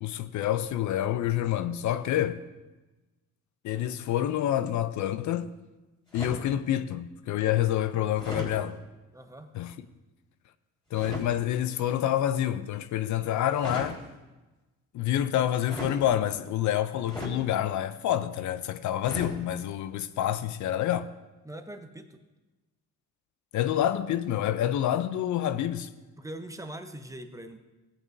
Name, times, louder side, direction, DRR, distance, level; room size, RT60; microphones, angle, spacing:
voice 1, 0.0-2.4 3.6-5.5 6.1-8.8 9.5-9.7 10.9-14.0 14.9-21.1 23.5-25.9, left 11 dB, 75° left, 0.5 m, -28 dB
sound 1, 6.1-6.5 8.1-8.5 10.9-11.3 13.5-13.9 15.6-16.0 17.0-17.4 19.0-19.4, left 1 dB, 15° left, 3.4 m, -36 dB
voice 2, 9.1-9.5 21.4-22.2 26.2-27.6, right 1 dB, 10° right, 0.8 m, -42 dB
15.0 x 8.6 x 2.7 m
cardioid pair, 90°, 30 cm